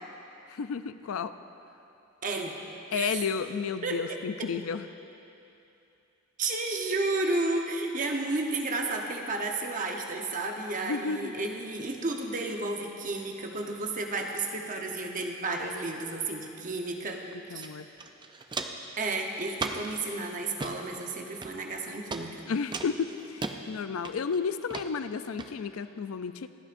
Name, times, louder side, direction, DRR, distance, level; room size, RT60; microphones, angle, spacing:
voice 1, 0.5-1.4 2.9-4.9 10.8-11.3 17.3-17.9 22.5-26.5, left 5 dB, 80° left, 12 dB, 0.4 m, -32 dB
voice 2, 2.2-2.6 2.9-3.2 3.8-4.5 6.4-17.2 17.5-17.7 18.6-22.5, right 2 dB, 40° right, 2 dB, 0.9 m, -32 dB
Walk footsteps, 17.6-17.7 18.0-18.9 19.6-20.0 20.4-20.7 21.4-21.8 22.1-22.2 22.7-23.6 24.0-24.4 24.7-24.9 25.4-25.5, right 3 dB, 20° right, 0.4 m, -35 dB
26.5 x 8.8 x 2.6 m, 2.8 s
head